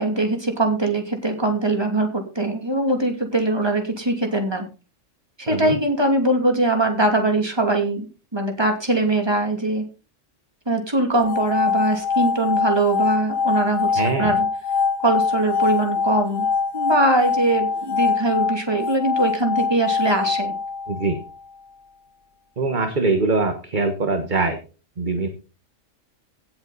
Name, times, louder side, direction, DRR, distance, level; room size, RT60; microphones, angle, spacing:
voice 1, 0.0-4.7 5.4-8.1 8.3-9.8 10.7-14.5 15.0-16.5 16.7-20.5, right 2 dB, 20° right, 3 dB, 2.7 m, -22 dB
sound 1, 11.2-21.3, left 5 dB, 45° left, 1.0 m, -23 dB
voice 2, 14.0-14.3 20.9-21.2 22.6-24.6 25.0-25.3, right 3 dB, 40° right, 6 dB, 1.5 m, -22 dB
16.5 x 7.9 x 4.1 m, 0.34 s
omnidirectional pair, 1.3 m